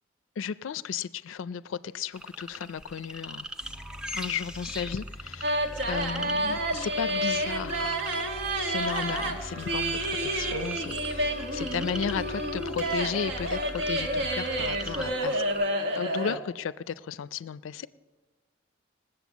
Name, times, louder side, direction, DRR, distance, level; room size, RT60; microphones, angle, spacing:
voice 1, 0.4-3.5 4.1-8.0 8.6-15.4 16.0-17.9, left 7 dB, 85° left, 17 dB, 0.4 m, -34 dB
sound 1, 2.1-15.6, equal, 5° right, 0.5 m, -42 dB
sound 2, 3.6-15.2, equal, 30° right, 1.2 m, -43 dB
sound 3, 5.4-16.4, right 1 dB, 70° right, 1.3 m, -29 dB
19.5 x 7.8 x 7.1 m, 1.4 s
head